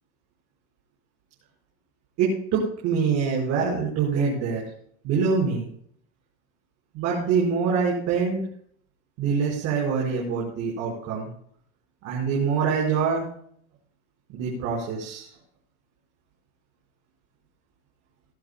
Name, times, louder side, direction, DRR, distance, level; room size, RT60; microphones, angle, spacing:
voice 1, 2.2-4.6 5.0-5.7 6.9-8.5 9.2-11.3 12.0-13.3 14.3-15.3, right 5 dB, 50° right, -4 dB, 4.9 m, -25 dB
19.0 x 13.0 x 2.3 m, 0.63 s
supercardioid pair, 150°, 33 cm